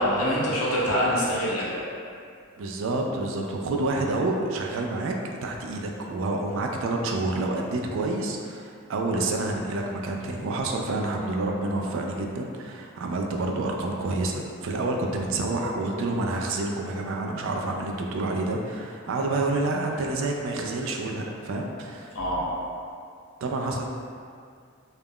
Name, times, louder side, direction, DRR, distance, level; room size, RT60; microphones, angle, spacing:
voice 1, 0.0-1.8 22.1-22.6, equal, 85° left, -6 dB, 0.7 m, -25 dB
voice 2, 2.6-5.1 5.4-22.1 23.4-23.9, right 2 dB, 65° right, 1 dB, 0.3 m, -28 dB
2.3 x 2.1 x 3.5 m, 2.3 s
head